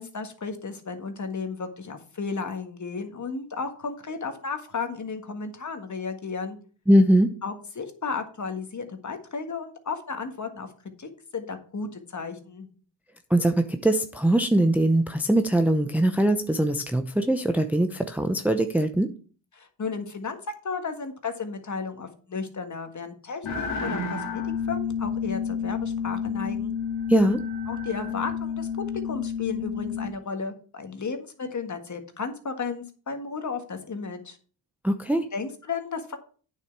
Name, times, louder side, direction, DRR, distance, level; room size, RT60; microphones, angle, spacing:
voice 1, 0.0-6.6 7.4-10.7 11.0-12.7 19.5-20.4 20.6-26.7 27.7-28.7 29.0-34.4 35.3-36.2, left 5 dB, 35° left, 6 dB, 1.8 m, -34 dB
voice 2, 6.9-7.3 13.3-19.1 27.1-27.4 34.8-35.3, right 1 dB, 5° right, 7 dB, 0.6 m, -21 dB
sound 1, 23.4-30.1, left 6 dB, 80° left, 2.7 m, -30 dB
9.1 x 7.0 x 4.6 m, 0.41 s
cardioid pair, 85°, 48 cm